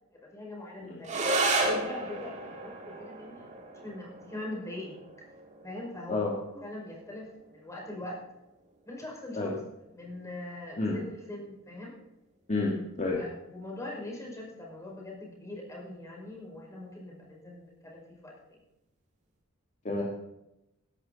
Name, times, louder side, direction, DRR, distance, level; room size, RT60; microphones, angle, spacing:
voice 1, 0.1-1.2 1.5-3.5 3.7-5.0 5.6-8.2 8.9-9.5 9.9-11.9 13.2-18.6, left 1 dB, 15° left, -2 dB, 5.4 m, -42 dB
sound 1, 1.0-10.0, right 2 dB, 35° right, 2.6 m, -34 dB
voice 2, 12.5-13.2 19.8-20.0, left 3 dB, 35° left, -2 dB, 2.1 m, -30 dB
17.0 x 11.5 x 4.2 m, 0.91 s
head